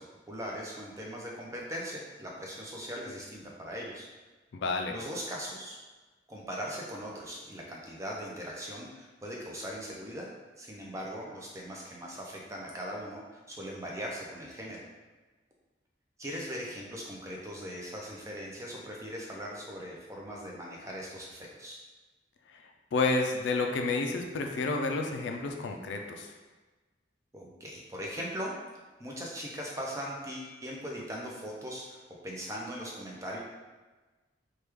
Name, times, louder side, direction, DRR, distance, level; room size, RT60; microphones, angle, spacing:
voice 1, 0.0-4.1 4.9-5.8 6.3-10.3 10.6-14.9 16.2-21.8 27.3-28.5 29.0-33.4, equal, 15° right, -2 dB, 0.4 m, -40 dB
voice 2, 4.5-5.0 22.5-22.6 22.9-26.3, left 3 dB, 65° left, 3 dB, 0.3 m, -30 dB
3.0 x 2.3 x 3.3 m, 1.3 s
head